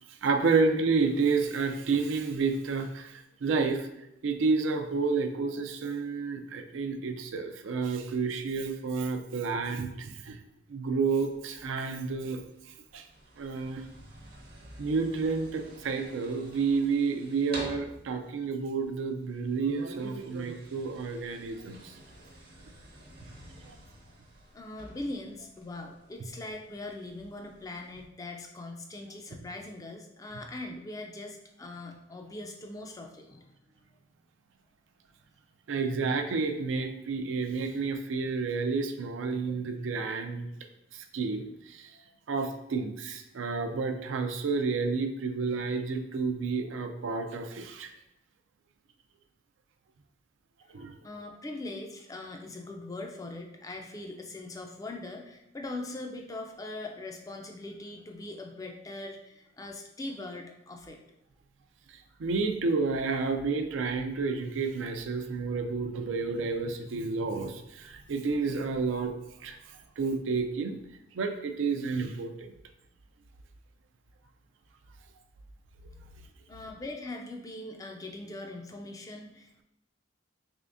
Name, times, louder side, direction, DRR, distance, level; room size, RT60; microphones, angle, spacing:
voice 1, 0.1-3.9 4.2-10.4 10.7-12.4 12.9-13.0 13.4-13.8 14.8-21.9 23.7-23.8 35.7-40.5 40.9-41.9 42.3-47.9 50.7-50.9 61.9-69.1 69.4-69.6 70.0-70.8 71.1-72.5, right 4 dB, 80° right, 6 dB, 0.4 m, -30 dB
sound 1, 11.0-28.0, right 1 dB, 50° right, 0.7 m, -50 dB
voice 2, 24.5-33.6 51.0-61.0 76.5-79.6, left 2 dB, 20° left, 2 dB, 0.3 m, -41 dB
3.5 x 3.4 x 2.5 m, 0.82 s
head